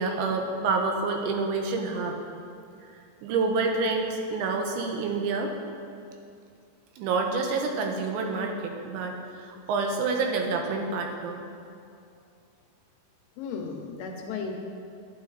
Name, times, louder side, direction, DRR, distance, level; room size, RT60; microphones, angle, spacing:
voice 1, 0.0-2.2 3.2-5.5 7.0-11.4, right 4 dB, 90° right, 3 dB, 3.3 m, -28 dB
voice 2, 13.4-14.6, left 5 dB, 75° left, 2 dB, 2.7 m, -35 dB
12.0 x 9.8 x 4.0 m, 2.4 s
omnidirectional pair, 5.1 m